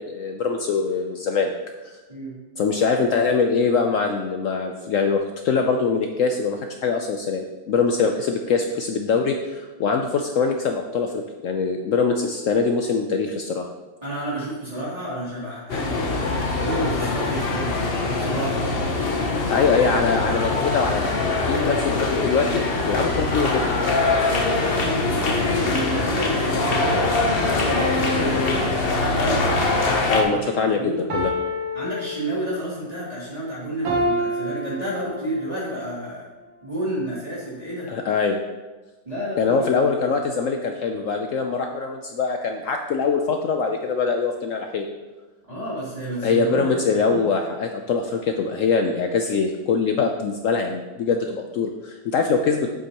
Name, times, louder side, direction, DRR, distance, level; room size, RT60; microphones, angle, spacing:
voice 1, 0.0-1.5 2.6-13.7 19.5-21.0 21.4-23.7 30.1-31.3 37.9-38.4 39.4-44.9 46.2-52.7, left 5 dB, 80° left, 4 dB, 0.7 m, -23 dB
voice 2, 2.1-2.4 14.0-16.2 16.6-18.6 24.5-29.5 30.2-31.2 31.7-36.2 36.6-37.9 39.0-39.7 40.0-40.2 45.5-47.2, right 1 dB, 20° right, -8 dB, 2.9 m, -30 dB
sound 1, 15.7-30.2, left 3 dB, 45° left, 0.8 m, -23 dB
sound 2, 27.7-29.6 31.1-32.7 33.8-35.6, equal, 75° right, 1.9 m, -28 dB
8.0 x 7.8 x 2.9 m, 1.2 s
omnidirectional pair, 1.9 m